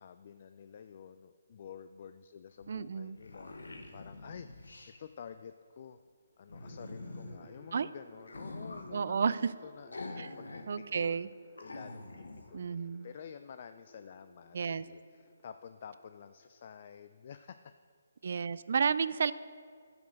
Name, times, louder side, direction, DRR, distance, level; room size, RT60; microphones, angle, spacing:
voice 1, 0.0-6.0 6.4-11.3 11.6-17.7, left 7 dB, 45° left, 10 dB, 0.3 m, -50 dB
sound 1, 2.6-2.7 3.0-5.0 6.5-7.4 8.2-8.9 9.9-10.7 11.0-11.1 11.6-12.5, left 2 dB, 80° left, 1.1 m, -45 dB
voice 2, 2.7-3.2 7.7-7.9 8.9-9.5 10.2-10.3 10.7-11.3 12.5-13.1 14.5-14.8 18.2-19.3, right 6 dB, 55° right, 16 dB, 0.4 m, -31 dB
sound 2, 6.5-15.5 15.7-16.4, right 1 dB, 20° left, 2.3 m, -59 dB
10.5 x 6.2 x 6.4 m, 2.1 s
figure-of-eight pair, 150°, 0 cm